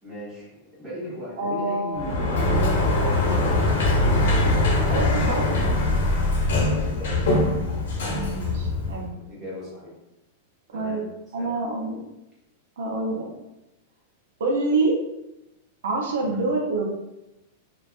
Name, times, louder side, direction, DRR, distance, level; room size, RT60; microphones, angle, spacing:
voice 1, 0.0-3.6 4.1-4.6 5.6-5.8 6.6-7.4 8.0-8.2 9.0-9.9 10.7-11.0 11.4-11.5 16.2-16.4, equal, 5° right, -10 dB, 1.0 m, -37 dB
voice 2, 1.4-2.3 4.9-5.5 8.1-9.1 10.7-11.1 11.3-12.0 12.8-13.3 14.4-15.0 15.8-16.8, right 2 dB, 90° right, 0 dB, 0.6 m, -26 dB
Sliding door, 1.9-9.1, left 2 dB, 90° left, 0.7 m, -22 dB
2.6 x 2.3 x 2.4 m, 0.94 s
supercardioid pair, 170°, 0 cm